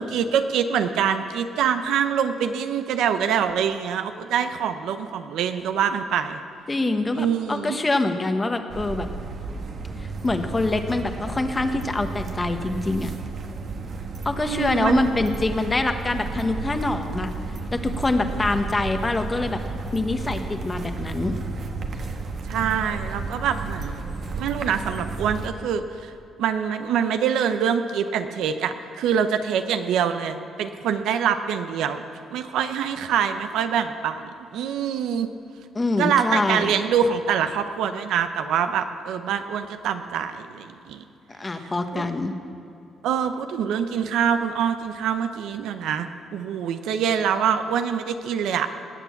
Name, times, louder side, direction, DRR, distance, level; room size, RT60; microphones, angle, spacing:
voice 1, 0.0-6.4 7.1-7.8 14.4-15.0 22.5-24.0 24.3-26.1 26.4-32.0 32.3-35.3 36.0-41.0 41.6-42.0 43.0-48.7, right 8 dB, 85° right, 9 dB, 0.8 m, -25 dB
voice 2, 6.7-9.1 10.0-13.1 14.2-17.3 17.7-19.6 19.9-21.3 35.7-36.7 41.4-42.3, left 2 dB, 25° left, 7 dB, 1.2 m, -25 dB
sound 1, 8.7-25.5, right 3 dB, 55° right, 1.3 m, -32 dB
19.5 x 7.0 x 7.2 m, 2.6 s
cardioid pair, 90°, 0 cm